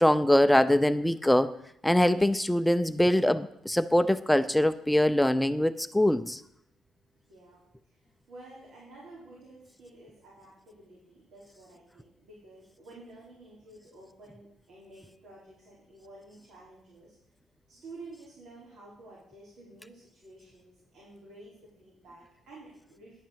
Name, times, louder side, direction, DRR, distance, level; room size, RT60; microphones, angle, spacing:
voice 1, 0.0-1.5 1.8-6.4, left 1 dB, 5° left, 12 dB, 0.5 m, -23 dB
voice 2, 7.3-8.0 8.3-17.1 17.7-23.2, right 2 dB, 75° right, -6 dB, 3.9 m, -51 dB
10.5 x 5.6 x 7.3 m, 0.73 s
cardioid pair, 90°, 0 cm